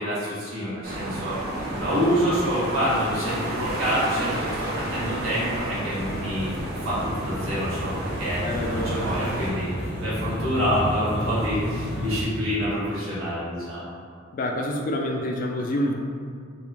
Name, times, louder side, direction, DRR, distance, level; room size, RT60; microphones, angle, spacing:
voice 1, 0.0-1.4 1.8-6.5 6.8-8.4 8.7-9.7 10.0-13.8, equal, 90° right, -9 dB, 1.0 m, -27 dB
sound 1, 0.8-9.5, right 1 dB, 50° right, 0.6 m, -31 dB
sound 2, 5.9-12.2, equal, 5° right, 0.9 m, -32 dB
voice 2, 8.4-9.1 14.3-15.9, left 1 dB, 45° left, 1 dB, 0.3 m, -27 dB
2.3 x 2.1 x 3.2 m, 2.2 s
head